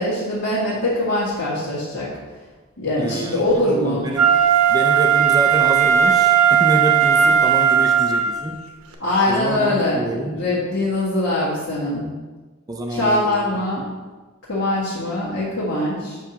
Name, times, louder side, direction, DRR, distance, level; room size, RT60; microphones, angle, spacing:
voice 1, 0.0-2.1 2.8-4.1 9.0-12.1 12.9-13.9 14.5-16.2, left 1 dB, 60° left, -9 dB, 1.7 m, -22 dB
voice 2, 3.0-4.3 4.7-8.6 9.3-10.4 12.7-13.5 13.8-13.9, right 1 dB, 15° right, 3 dB, 0.4 m, -27 dB
Wind instrument woodwind instrument, 4.1-8.4 8.9-9.0, right 8 dB, 80° right, 0.9 m, -16 dB
7.3 x 5.7 x 2.9 m, 1.3 s
head